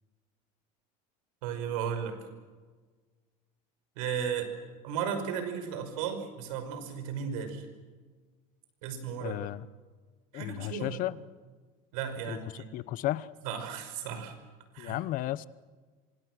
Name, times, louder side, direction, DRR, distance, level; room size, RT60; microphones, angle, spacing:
voice 1, 1.4-2.2 4.0-4.5 4.8-7.7 8.8-9.4 10.3-11.0 11.9-12.7 13.4-14.3 14.7-15.0, right 7 dB, 90° right, 8 dB, 5.6 m, -35 dB
voice 2, 9.2-9.7 10.3-11.2 12.3-13.3 14.8-15.5, left 15 dB, 50° left, 17 dB, 1.0 m, -34 dB
27.0 x 26.5 x 6.2 m, 1.4 s
cardioid pair, 140°, 17 cm